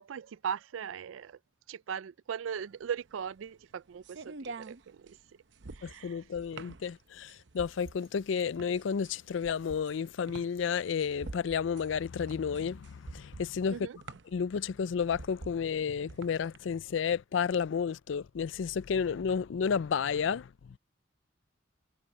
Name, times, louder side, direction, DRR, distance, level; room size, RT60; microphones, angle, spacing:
voice 1, 0.0-1.4 1.7-5.2 5.7-6.2 13.7-14.0, right 7 dB, 90° right, 0.4 m, -39 dB
sound 1, 2.7-16.6, right 3 dB, 65° right, 0.8 m, -48 dB
voice 2, 5.8-13.8 14.3-20.8, left 6 dB, 75° left, 0.4 m, -32 dB
head